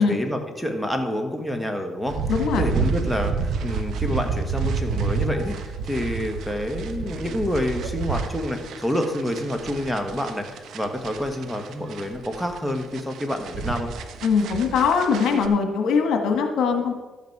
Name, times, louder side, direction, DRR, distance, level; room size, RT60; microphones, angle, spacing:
voice 1, 0.0-2.2 2.6-5.5 5.8-13.9, left 1 dB, ahead, 5 dB, 1.4 m, -28 dB
sound 1, 2.1-15.5, right 5 dB, 75° right, 0.9 m, -29 dB
voice 2, 2.3-2.6 14.2-16.9, left 5 dB, 80° left, 5 dB, 1.4 m, -21 dB
12.5 x 8.2 x 4.7 m, 1.2 s
cardioid pair, 90°, 0 cm